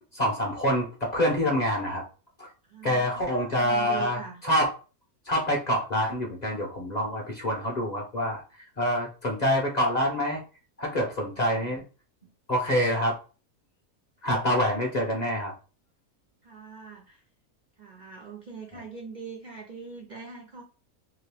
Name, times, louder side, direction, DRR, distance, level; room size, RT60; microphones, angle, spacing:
voice 1, 0.1-2.0 2.4-2.5 2.8-4.7 5.3-8.4 8.8-10.4 10.8-11.8 12.5-13.2 14.2-15.5, equal, 45° left, 0 dB, 0.6 m, -26 dB
voice 2, 2.6-4.4 16.4-17.2 17.8-20.6, right 5 dB, 80° right, 1 dB, 0.4 m, -42 dB
2.9 x 2.7 x 3.3 m, 0.34 s
omnidirectional pair, 1.5 m